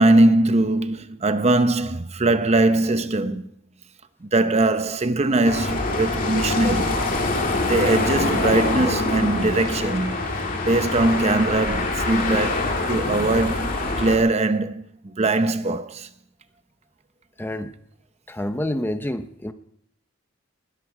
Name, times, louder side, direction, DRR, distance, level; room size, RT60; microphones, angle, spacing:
voice 1, 0.0-3.4 4.2-7.0 7.3-10.2 10.7-16.1, right 2 dB, 30° right, 0.7 m, -21 dB
sound 1, 5.4-14.2, left 2 dB, 40° left, 2.3 m, -24 dB
voice 2, 17.4-17.7 18.3-19.5, left 1 dB, 10° left, 0.7 m, -28 dB
20.0 x 11.0 x 4.9 m
head